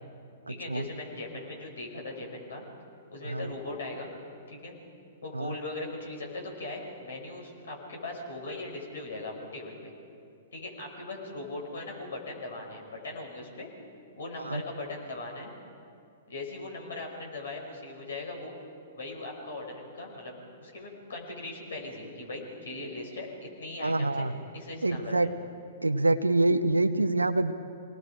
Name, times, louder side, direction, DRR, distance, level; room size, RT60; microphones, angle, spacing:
voice 1, 0.5-2.6 3.1-4.1 4.5-4.8 5.2-9.9 10.5-13.7 14.2-15.5 16.3-18.6 18.9-24.3 24.5-25.3, left 2 dB, 65° left, 0 dB, 5.8 m, -39 dB
voice 2, 23.8-24.3 24.8-25.3 25.8-27.5, right 2 dB, 85° right, 9 dB, 0.7 m, -26 dB
26.5 x 19.0 x 5.1 m, 2.5 s
figure-of-eight pair, 110°, 0 cm